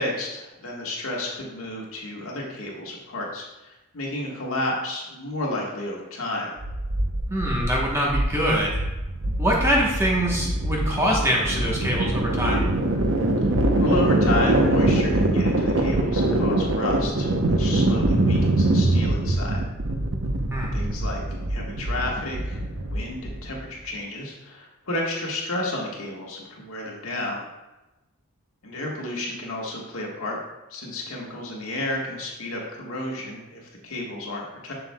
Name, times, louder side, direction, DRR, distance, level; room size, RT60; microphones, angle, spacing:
voice 1, 0.0-6.5 13.4-13.5 13.8-19.6 20.6-21.2 21.5-27.4 28.6-30.4 30.7-34.7, left 1 dB, 70° left, -2 dB, 1.5 m, -31 dB
sound 1, 6.6-23.6, right 1 dB, 60° right, 0.8 m, -23 dB
voice 2, 7.3-8.8 9.4-12.6 20.5-20.7, equal, 10° right, -3 dB, 1.0 m, -24 dB
7.3 x 6.8 x 2.3 m, 1.0 s
head